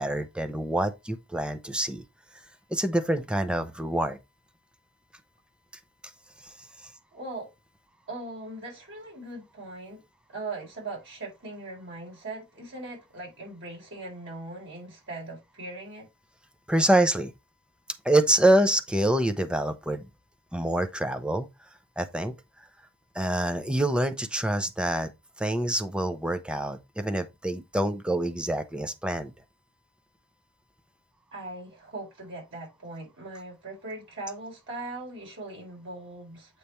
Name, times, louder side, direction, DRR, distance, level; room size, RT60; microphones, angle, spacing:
voice 1, 0.0-2.0 2.7-4.2 6.4-6.5 6.8-6.9 16.7-17.3 18.0-20.1 20.5-21.5 22.0-22.3 23.1-25.1 25.4-29.3, right 1 dB, 5° right, 0.7 m, -26 dB
voice 2, 7.1-7.5 8.1-10.0 10.3-16.0 31.3-36.6, right 2 dB, 60° right, 4.3 m, -40 dB
8.2 x 3.3 x 4.3 m
head